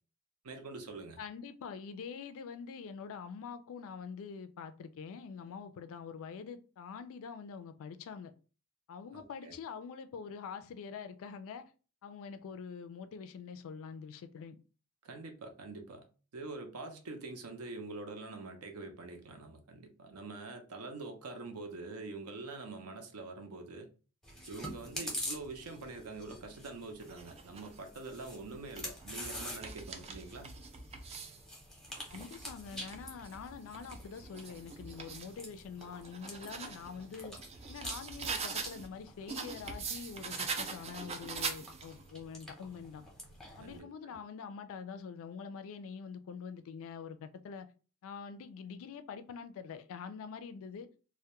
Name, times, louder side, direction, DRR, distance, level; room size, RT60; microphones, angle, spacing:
voice 1, 0.4-1.2 9.1-9.5 15.0-16.1 16.3-23.9 24.5-30.6 43.6-44.2, right 3 dB, 75° right, 0.5 m, -45 dB
voice 2, 1.2-8.3 8.9-11.7 12.0-14.6 32.1-37.4 37.7-43.0 43.6-47.7 48.0-50.9, left 6 dB, 65° left, 0.3 m, -45 dB
Chewing mastication, 24.2-43.8, equal, ahead, 0.6 m, -47 dB
sound 1, 27.0-27.8 28.5-31.4 31.9-35.3 35.8-38.9 39.3-42.0, right 5 dB, 30° right, 0.3 m, -43 dB
2.2 x 2.1 x 2.8 m
head